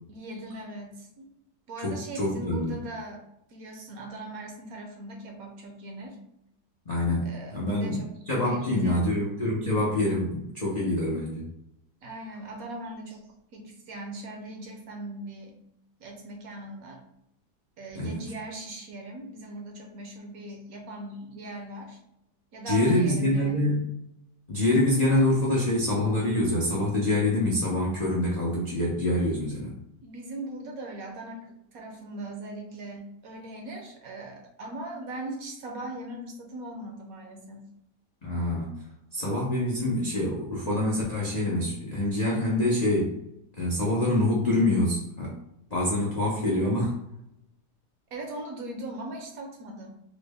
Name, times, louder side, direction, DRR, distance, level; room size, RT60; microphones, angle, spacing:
voice 1, 0.1-1.3 1.7-3.2 3.5-6.2 7.2-9.2 12.0-15.5 16.0-17.0 17.8-22.0 22.5-23.7 30.0-37.7 48.1-49.9, right 1 dB, 65° right, 1 dB, 1.0 m, -40 dB
voice 2, 1.8-2.8 6.9-11.5 17.9-18.2 22.7-23.9 24.5-29.8 38.2-38.7 39.1-43.2 43.6-45.3 45.7-47.0, left 1 dB, 85° left, -5 dB, 0.3 m, -26 dB
3.7 x 2.1 x 3.3 m, 0.81 s
omnidirectional pair, 1.8 m